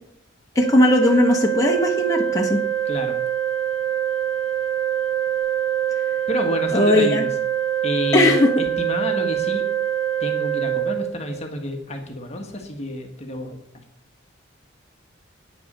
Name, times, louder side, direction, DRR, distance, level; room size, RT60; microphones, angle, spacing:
voice 1, 0.5-2.6 6.7-7.2 8.1-8.5, left 1 dB, 15° left, -1 dB, 1.4 m, -18 dB
Organ, 0.6-11.6, right 10 dB, 65° right, 1.3 m, -24 dB
voice 2, 6.3-7.3 7.8-8.4 8.8-9.6 10.2-13.6, left 1 dB, 35° left, 3 dB, 1.5 m, -28 dB
9.6 x 6.8 x 6.7 m, 0.69 s
head